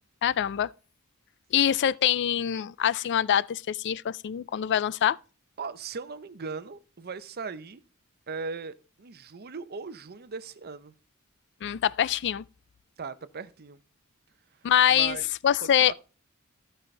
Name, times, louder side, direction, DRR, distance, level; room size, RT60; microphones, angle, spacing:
voice 1, 0.2-0.7 1.5-5.2 11.6-12.4 14.6-15.2 15.4-15.9, left 10 dB, 55° left, 0.4 m, -24 dB
voice 2, 5.6-7.8 8.3-10.9 13.0-13.8 14.9-15.3 15.6-15.9, right 4 dB, 45° right, 0.7 m, -38 dB
14.5 x 5.6 x 3.3 m
head